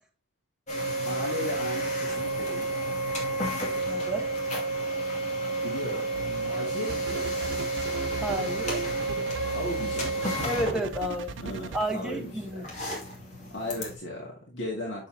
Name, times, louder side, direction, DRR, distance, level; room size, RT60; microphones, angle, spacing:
sound 1, 0.7-13.9, right 2 dB, 40° left, 2.2 m, -31 dB
voice 1, 1.0-2.7 5.5-6.1 6.4-7.7 9.5-10.6 11.4-12.6 13.5-15.1, left 1 dB, 85° left, 2.0 m, -36 dB
voice 2, 3.9-4.3 8.2-8.8 10.4-11.3 11.7-12.7, right 1 dB, 5° right, 1.4 m, -31 dB
sound 2, 6.1-6.5 6.9-11.8, right 5 dB, 85° right, 0.6 m, -37 dB
6.8 x 6.8 x 2.8 m
head